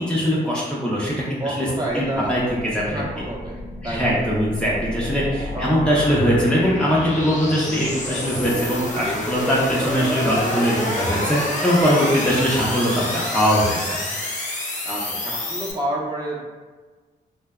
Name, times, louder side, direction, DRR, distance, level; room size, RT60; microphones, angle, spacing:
voice 1, 0.0-1.7 1.9-2.4 2.7-3.0 3.8-14.0, equal, 5° left, -7 dB, 0.7 m, -21 dB
voice 2, 1.4-2.4 2.8-3.6 3.8-4.2 5.5-5.8 6.1-6.2 14.8-16.5, right 1 dB, 20° right, -5 dB, 0.9 m, -29 dB
sound 1, 1.9-15.7, left 1 dB, 40° left, 0.7 m, -29 dB
2.6 x 2.1 x 2.3 m, 1.4 s
supercardioid pair, 40°, 19 cm